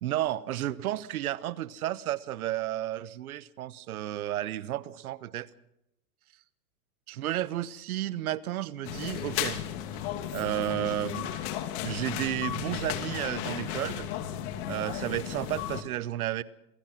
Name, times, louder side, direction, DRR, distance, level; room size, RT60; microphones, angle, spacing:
voice 1, 0.0-5.5 7.1-9.6 10.3-11.3 11.8-14.1 14.7-16.4, right 13 dB, 70° right, 1.2 m, -32 dB
sound 1, 8.8-15.8, left 11 dB, 45° left, 2.6 m, -34 dB
27.5 x 19.0 x 6.0 m
hypercardioid pair, 140°, 46 cm